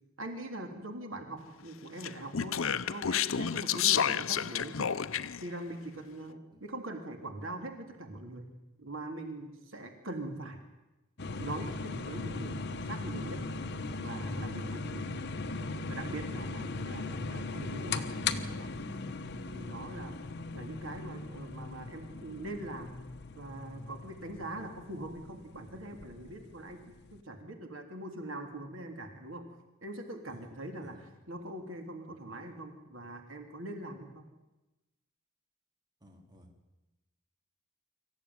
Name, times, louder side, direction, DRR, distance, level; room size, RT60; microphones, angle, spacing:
voice 1, 0.2-2.6 2.9-4.9 5.4-8.5 8.8-10.6 11.4-13.4 14.0-15.1 15.9-18.7 19.5-20.2 20.5-22.9 23.4-29.4 29.8-31.0 31.3-34.2, right 1 dB, 75° right, 4 dB, 3.2 m, -42 dB
Speech, 2.0-5.4, left 8 dB, 75° left, 0.7 m, -30 dB
sound 1, 11.2-27.2, left 3 dB, 55° left, 1.2 m, -39 dB
voice 2, 30.3-31.1 36.0-36.5, equal, 20° right, 2 dB, 3.5 m, -57 dB
25.5 x 15.0 x 9.6 m, 1.0 s
head